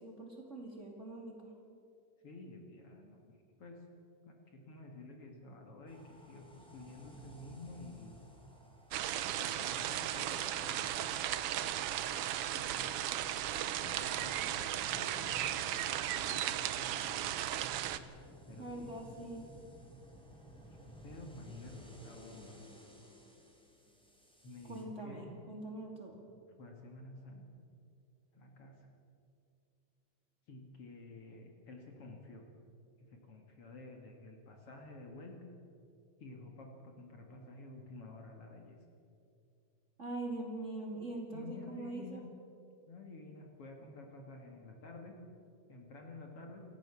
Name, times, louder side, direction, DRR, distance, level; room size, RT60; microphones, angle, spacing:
voice 1, 0.0-1.5 18.6-19.5 24.7-26.2 40.0-42.2, right 2 dB, 25° right, 1 dB, 2.8 m, -43 dB
voice 2, 2.2-3.8 4.2-8.2 9.3-11.0 11.6-11.8 12.5-13.2 13.8-17.2 18.5-18.9 20.7-20.8 21.0-22.6 24.4-25.3 26.6-27.5 28.3-28.7 30.5-32.5 33.0-35.4 36.2-38.8 41.3-42.2 42.9-45.1 45.7-46.6, left 2 dB, 50° left, 2 dB, 2.8 m, -51 dB
sound 1, 5.9-24.8, equal, ahead, 3.4 m, -56 dB
sound 2, 8.9-18.0, right 12 dB, 80° right, 1.3 m, -36 dB
28.0 x 14.5 x 7.2 m, 2.5 s
omnidirectional pair, 3.6 m